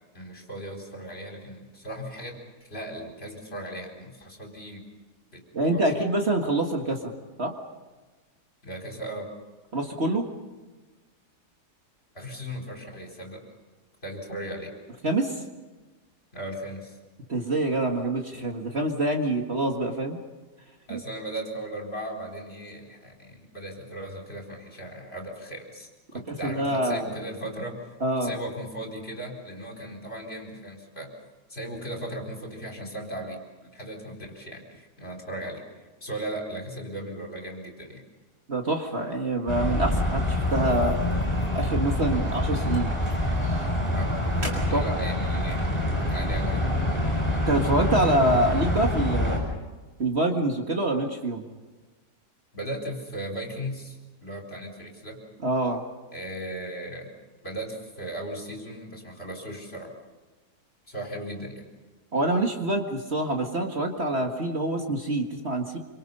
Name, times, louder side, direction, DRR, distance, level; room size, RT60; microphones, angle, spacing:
voice 1, 0.1-4.8 5.3-6.1 8.6-9.3 12.1-13.4 14.0-14.7 16.3-17.0 20.9-28.0 28.2-31.1 31.5-33.4 33.7-35.6 36.0-38.0 43.9-44.1 44.7-45.6 46.1-46.7 52.5-55.2 56.1-57.1 57.4-59.9 60.9-61.6, right 1 dB, 35° left, 1 dB, 4.7 m, -37 dB
voice 2, 5.5-7.1 7.4-7.5 9.7-10.2 15.0-15.4 17.3-20.2 20.9-21.0 26.3-27.1 28.0-28.4 38.5-41.0 41.5-42.9 44.7-44.9 47.0-47.2 47.5-49.4 50.0-51.4 55.4-55.8 62.1-65.8, right 1 dB, 40° right, 2 dB, 2.0 m, -26 dB
sound 1, 39.5-49.4, left 1 dB, 15° left, 7.3 m, -26 dB
sound 2, 40.3-49.2, right 1 dB, 80° right, 5.3 m, -44 dB
27.0 x 26.0 x 5.5 m, 1.3 s
omnidirectional pair, 1.7 m